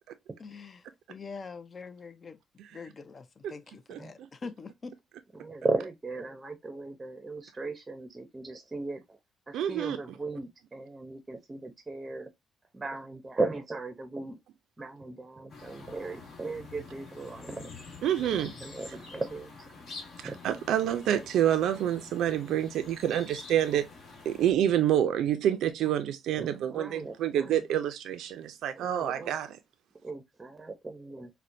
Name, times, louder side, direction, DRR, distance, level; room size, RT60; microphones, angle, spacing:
voice 1, 0.4-0.8 1.1-2.4 2.7-5.0, left 4 dB, 40° left, 0.5 m, -44 dB
voice 2, 3.9-4.3 9.5-10.0 18.0-18.5 20.2-23.9 24.3-29.6, right 10 dB, 80° right, 0.4 m, -28 dB
voice 3, 5.3-9.0 9.5-12.3 12.7-14.4 14.8-17.7 18.2-19.5 20.2-20.4 26.4-27.6 28.8-29.4 30.0-31.3, right 3 dB, 20° right, 0.6 m, -37 dB
sound 1, 15.5-24.5, left 3 dB, 55° left, 1.4 m, -47 dB
4.2 x 2.1 x 2.5 m
cardioid pair, 90°, 0 cm